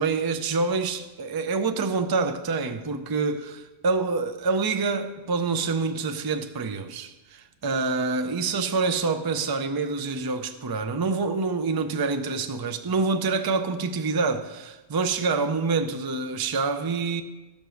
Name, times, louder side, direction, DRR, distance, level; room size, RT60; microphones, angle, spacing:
voice 1, 0.0-17.2, right 4 dB, 30° right, 0.4 m, -26 dB
15.0 x 5.3 x 6.3 m
omnidirectional pair, 1.3 m